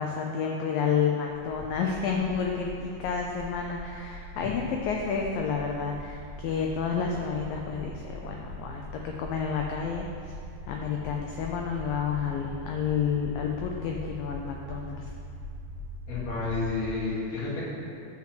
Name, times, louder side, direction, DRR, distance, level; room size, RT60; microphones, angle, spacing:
voice 1, 0.0-10.3 10.7-15.1, left 6 dB, 90° left, 1 dB, 1.9 m, -30 dB
sound 1, 1.3-17.0, equal, 90° right, 2.9 m, -42 dB
voice 2, 16.1-17.6, left 3 dB, 65° left, -7 dB, 4.2 m, -30 dB
11.5 x 4.4 x 7.7 m, 2.6 s
omnidirectional pair, 4.8 m